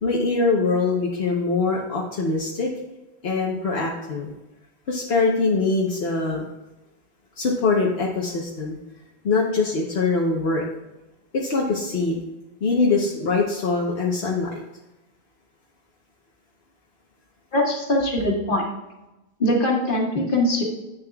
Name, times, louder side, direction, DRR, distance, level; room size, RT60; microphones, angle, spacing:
voice 1, 0.0-2.7 3.2-4.3 4.9-6.4 7.4-8.8 9.2-10.6 11.3-12.2 12.6-14.5, left 3 dB, 75° left, -2 dB, 1.2 m, -23 dB
voice 2, 17.5-18.6 19.4-20.6, left 1 dB, 55° left, -2 dB, 1.8 m, -22 dB
10.5 x 8.2 x 2.3 m, 1.0 s
omnidirectional pair, 1.0 m